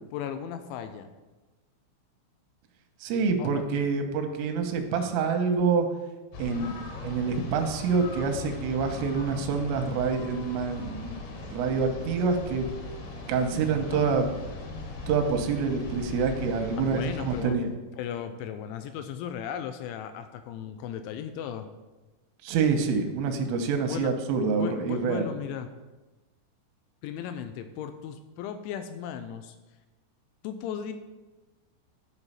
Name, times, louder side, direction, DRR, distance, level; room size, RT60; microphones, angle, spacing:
voice 1, 0.1-1.1 3.4-3.5 6.5-6.8 13.6-14.1 16.8-17.6 17.9-21.7 23.8-24.1 24.5-25.7 27.0-29.6 30.4-30.9, left 9 dB, 85° left, 9 dB, 2.6 m, -36 dB
voice 2, 3.0-5.9 6.4-12.7 13.3-14.3 15.1-17.7 22.4-25.3, right 5 dB, 85° right, 6 dB, 3.3 m, -27 dB
sound 1, 6.3-17.4, left 3 dB, 65° left, 3.3 m, -39 dB
12.0 x 4.8 x 5.6 m, 1.1 s
omnidirectional pair, 5.9 m